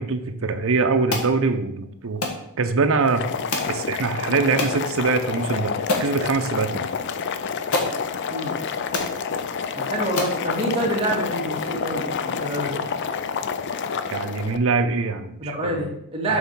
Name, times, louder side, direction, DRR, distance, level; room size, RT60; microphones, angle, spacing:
voice 1, 0.0-2.2 2.6-3.2 3.7-5.7 6.0-6.9 14.1-15.8 16.3-16.4, right 4 dB, 65° right, 7 dB, 0.7 m, -23 dB
sound 1, 1.1-1.3 2.2-2.4 3.5-3.8 4.6-4.8 5.4-5.5 5.9-6.1 7.2-7.3 7.7-8.0 8.6-8.7 8.9-9.1 9.7-9.8 10.2-10.4, left 2 dB, 75° left, 1.4 m, -26 dB
Boiling, 3.0-14.6, left 6 dB, 55° left, 0.5 m, -28 dB
voice 2, 9.8-12.9 15.4-16.4, right 1 dB, 25° right, -2 dB, 1.9 m, -27 dB
6.9 x 4.3 x 5.4 m, 0.76 s
head